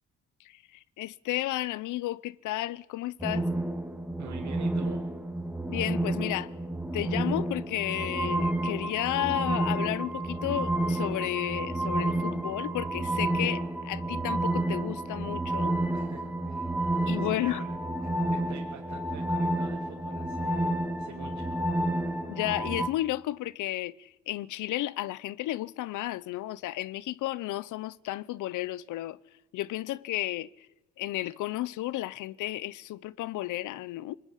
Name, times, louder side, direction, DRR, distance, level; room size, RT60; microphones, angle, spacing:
voice 1, 0.4-3.5 5.7-6.5 6.9-15.8 17.1-17.6 22.3-29.2 29.5-30.7 31.0-34.2, left 16 dB, 85° left, 0.8 m, -33 dB
sound 1, 3.2-22.9, right 1 dB, 5° right, 2.3 m, -30 dB
voice 2, 4.2-5.0 15.9-17.7 18.0-21.7, right 8 dB, 70° right, 3.2 m, -47 dB
26.0 x 21.0 x 10.0 m
cardioid pair, 90°, 30 cm